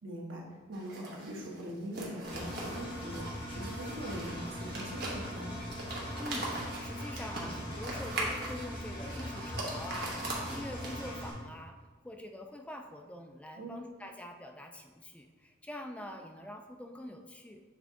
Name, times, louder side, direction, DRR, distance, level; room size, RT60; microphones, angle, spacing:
voice 1, 0.0-5.5 13.6-13.8, right 1 dB, 90° right, -1 dB, 1.1 m, -42 dB
sound 1, 0.7-11.3, right 2 dB, 55° right, 1.1 m, -41 dB
Engine, 2.2-11.3, equal, 30° left, 1.4 m, -41 dB
voice 2, 6.2-11.8 12.0-17.6, left 1 dB, 5° left, 4 dB, 0.3 m, -45 dB
7.2 x 3.6 x 3.6 m, 1.4 s
head